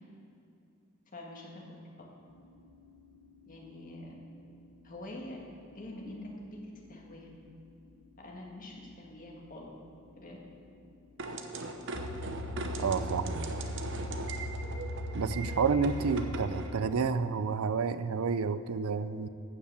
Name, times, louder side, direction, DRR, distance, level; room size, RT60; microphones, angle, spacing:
voice 1, 1.1-1.8 3.5-4.1 4.8-5.4 5.7-6.6 6.9-7.3 8.2-9.7 10.2-10.4 15.3-15.5, left 1 dB, 40° left, -1 dB, 1.9 m, -45 dB
sound 1, 2.3-16.5, left 1 dB, 90° left, 0.9 m, -41 dB
sound 2, 11.2-16.7, right 2 dB, 60° right, 0.9 m, -40 dB
voice 2, 12.8-13.5 15.1-19.3, right 5 dB, 85° right, 13 dB, 0.5 m, -30 dB
13.0 x 5.8 x 8.2 m, 2.7 s
head